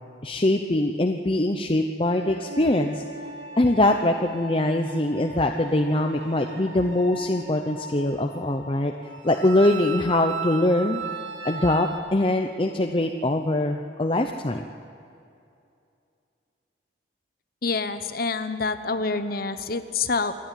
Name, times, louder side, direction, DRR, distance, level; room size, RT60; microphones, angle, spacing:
voice 1, 0.2-3.0 3.6-8.9 9.2-11.0 11.4-14.6, left 1 dB, 30° left, 3 dB, 0.7 m, -23 dB
sound 1, 2.1-12.0, right 4 dB, 85° right, 2.7 m, -38 dB
voice 2, 17.6-20.3, left 4 dB, 50° left, 10 dB, 1.0 m, -27 dB
27.0 x 11.0 x 9.1 m, 2.5 s
head